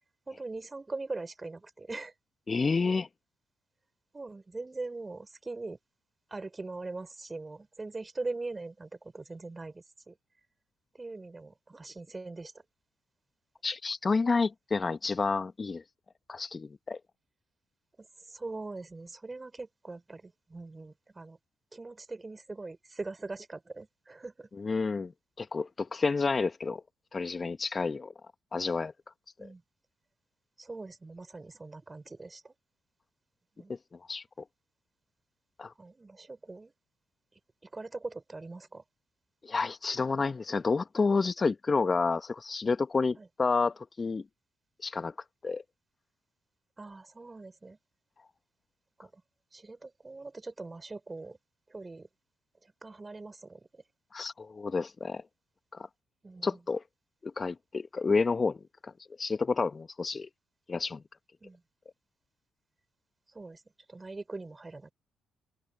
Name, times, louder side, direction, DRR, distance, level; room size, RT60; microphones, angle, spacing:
voice 1, 0.3-2.1 4.1-5.8 6.3-10.2 10.9-12.5 18.0-21.4 21.7-24.5 29.4-29.6 30.6-32.5 33.6-33.8 35.8-36.7 37.6-38.8 43.2-43.3 46.8-47.8 49.0-49.2 49.5-51.4 51.7-52.1 52.6-53.8 56.2-56.6 61.4-61.6 63.3-63.6 63.9-64.9, right 3 dB, 25° right, 4.2 m, -41 dB
voice 2, 2.5-3.1 13.6-15.8 16.3-17.0 24.5-25.1 25.4-26.8 27.1-28.1 28.5-28.9 29.4-29.5 34.1-34.2 35.6-35.7 39.4-44.2 44.8-45.1 45.4-45.6 54.1-55.2 55.7-55.9 56.4-56.8 57.2-58.9 59.2-60.3 60.7-61.0, left 4 dB, 35° left, 1.8 m, -30 dB
open air
hypercardioid pair, 45°, 0 cm